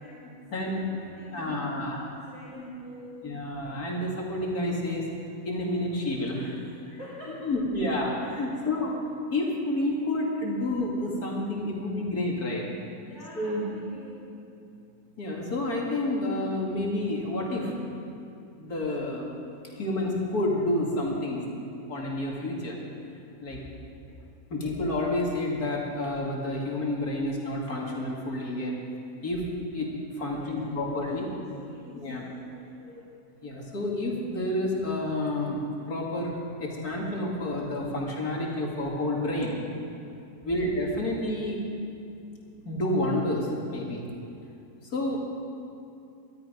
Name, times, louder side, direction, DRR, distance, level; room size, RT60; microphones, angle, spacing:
voice 1, 0.0-3.3 6.7-7.5 8.5-8.6 13.0-14.4 23.5-23.6 24.1-24.3 30.2-33.1, left 1 dB, 40° left, -10 dB, 3.5 m, -48 dB
voice 2, 1.3-2.0 2.5-2.7 3.2-5.0 5.4-6.7 7.4-8.9 9.3-12.6 13.4-13.6 15.2-17.7 18.6-19.3 19.6-21.4 21.9-22.8 23.4-23.6 24.5-28.8 29.2-29.4 29.7-31.2 31.9-32.3 32.9-33.0 33.4-35.6 35.9-36.3 36.6-39.6 40.4-41.6 42.5-44.0 44.9-45.3, left 1 dB, 65° left, -2 dB, 2.9 m, -29 dB
19.5 x 13.0 x 5.3 m, 2.6 s
omnidirectional pair, 1.7 m